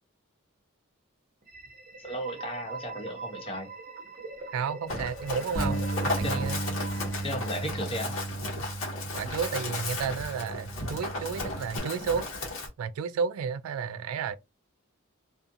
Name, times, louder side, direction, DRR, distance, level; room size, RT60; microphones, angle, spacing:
sound 1, 1.4-8.2, right 3 dB, 45° right, 0.7 m, -43 dB
voice 1, 2.0-3.7 6.2-6.4 7.2-8.2, equal, 25° left, 0.6 m, -35 dB
voice 2, 4.5-5.9 6.2-6.9 9.1-12.3 12.8-14.3, right 6 dB, 90° right, 0.3 m, -32 dB
Run, 4.9-12.7, left 2 dB, 75° left, 1.0 m, -35 dB
Bass guitar, 5.5-11.8, right 2 dB, 45° left, 1.1 m, -35 dB
2.4 x 2.4 x 2.6 m
head